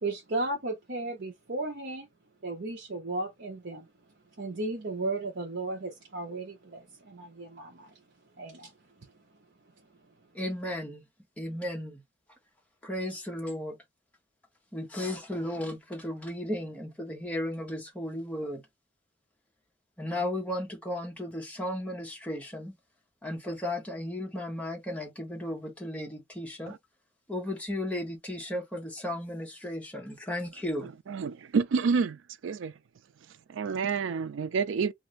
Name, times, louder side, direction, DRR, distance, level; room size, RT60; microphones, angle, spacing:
voice 1, 0.0-2.1 2.4-3.9 4.4-7.9 8.4-8.7, right 2 dB, 60° right, 0.8 m, -35 dB
voice 2, 10.3-11.0 11.4-12.0 12.8-13.8 14.7-18.6 20.0-22.7 23.2-26.8 27.3-30.9, left 1 dB, 5° left, 0.9 m, -35 dB
voice 3, 31.1-32.2 32.4-32.7 33.5-34.9, right 5 dB, 85° right, 0.4 m, -28 dB
2.6 x 2.5 x 3.0 m
head